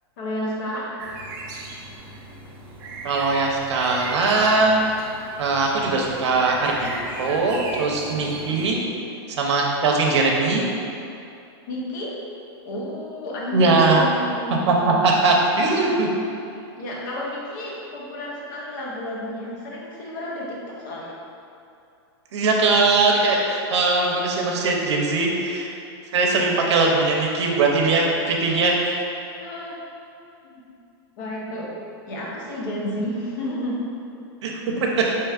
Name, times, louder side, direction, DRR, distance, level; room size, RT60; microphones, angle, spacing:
voice 1, 0.2-0.9 8.5-8.6 11.7-12.2 12.6-15.1 16.5-21.1 26.6-26.7 29.4-29.8 30.4-30.6 31.2-31.7 32.1-33.8, left 1 dB, 45° left, -4 dB, 0.8 m, -31 dB
sound 1, 1.0-8.8, right 2 dB, 45° right, 0.6 m, -37 dB
voice 2, 3.0-4.7 5.4-6.9 7.2-8.8 9.3-10.7 13.5-14.0 14.7-14.8 15.0-16.1 22.3-25.7 26.1-29.0 34.4-34.5 34.8-34.9, right 3 dB, 85° right, -1 dB, 0.6 m, -20 dB
4.5 x 3.1 x 2.3 m, 2.6 s
supercardioid pair, 175°, 14 cm